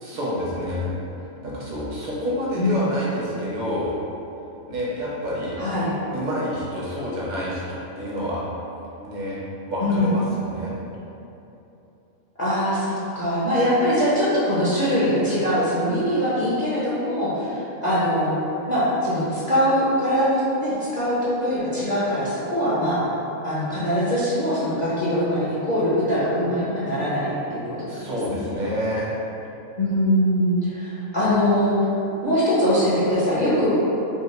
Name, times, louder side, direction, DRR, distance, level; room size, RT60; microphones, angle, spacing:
voice 1, 0.0-0.9 1.4-3.9 4.7-5.6 6.1-8.4 9.0-9.4 9.7-10.7 27.9-29.1, equal, 40° right, -6 dB, 0.8 m, -28 dB
voice 2, 5.6-5.9 9.8-10.1 12.4-18.3 18.7-23.0 23.4-27.9 28.3-28.5 29.8-31.7 32.2-33.8, equal, 40° left, -11 dB, 0.7 m, -22 dB
5.6 x 2.1 x 3.1 m, 2.9 s
omnidirectional pair, 1.5 m